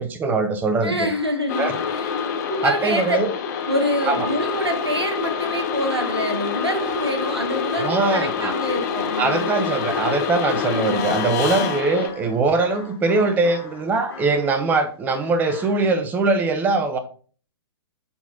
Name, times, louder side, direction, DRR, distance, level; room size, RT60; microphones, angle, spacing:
voice 1, 0.0-1.1 1.6-1.8 2.6-3.3 4.1-4.3 7.8-8.5 9.2-17.0, right 3 dB, 15° right, 9 dB, 0.6 m, -22 dB
voice 2, 0.8-2.1 2.5-3.2 3.7-9.5 10.5-11.1 11.5-11.7, equal, 85° right, 5 dB, 1.5 m, -26 dB
sound 1, 1.1-7.2 9.2-14.8 15.1-15.9, left 4 dB, 65° left, 2.4 m, -38 dB
sound 2, 1.5-12.1, left 6 dB, 40° left, 0.9 m, -26 dB
6.9 x 4.0 x 4.2 m, 0.42 s
figure-of-eight pair, 110°, 13 cm